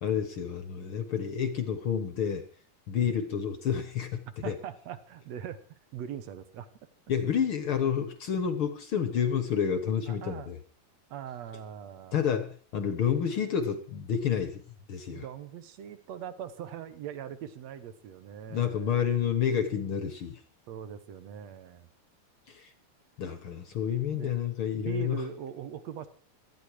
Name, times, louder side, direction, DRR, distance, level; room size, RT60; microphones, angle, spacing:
voice 1, 0.0-2.5 2.9-4.5 7.1-10.6 12.1-14.6 14.9-15.2 18.5-20.4 22.5-22.7 23.2-25.2, left 8 dB, 55° left, 9 dB, 1.6 m, -29 dB
voice 2, 3.0-3.3 4.2-6.7 10.1-10.5 11.1-12.3 15.1-19.0 20.7-21.9 24.1-24.3 24.8-26.1, right 9 dB, 60° right, 12 dB, 2.1 m, -41 dB
19.0 x 13.5 x 4.8 m, 0.40 s
omnidirectional pair, 3.9 m